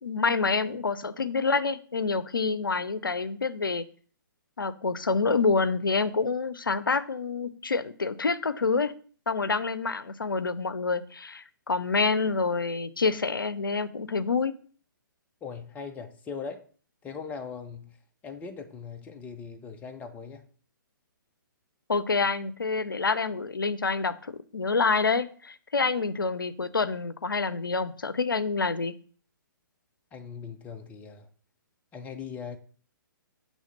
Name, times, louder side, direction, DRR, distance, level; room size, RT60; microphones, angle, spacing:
voice 1, 0.0-3.9 4.6-8.9 9.3-14.5 21.9-28.9, left 4 dB, 85° left, 0.5 m, -27 dB
voice 2, 15.4-16.6 17.0-18.0 18.2-20.5 30.1-31.3 31.9-32.6, left 5 dB, 15° left, 0.6 m, -40 dB
6.3 x 3.3 x 5.4 m
figure-of-eight pair, 130°, 11 cm